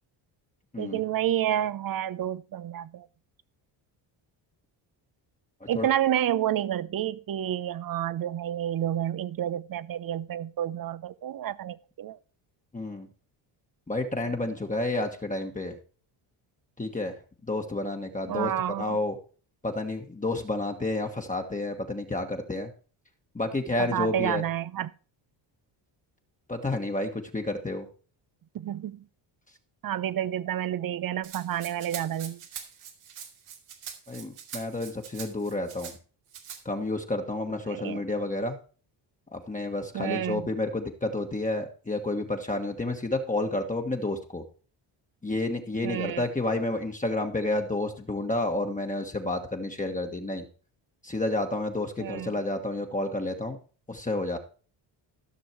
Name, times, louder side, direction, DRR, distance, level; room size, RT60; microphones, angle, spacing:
voice 1, 0.8-3.1 5.7-12.2 18.3-19.0 23.8-24.9 28.5-29.0 29.8-32.4 37.7-38.0 39.9-40.4 45.8-46.2 52.0-52.3, right 11 dB, 45° right, 0.8 m, -29 dB
voice 2, 12.7-13.1 13.9-15.8 16.8-17.1 17.5-18.5 18.8-19.1 19.6-22.7 23.3-24.4 26.5-27.8 34.1-35.9 36.6-38.6 39.3-44.4 45.2-50.4 51.0-53.6 53.9-54.4, left 2 dB, 15° left, 1.5 m, -30 dB
Rattle (instrument), 31.2-35.9 36.3-36.6, right 8 dB, 80° right, 2.7 m, -43 dB
14.5 x 6.2 x 4.5 m
cardioid pair, 85°, 49 cm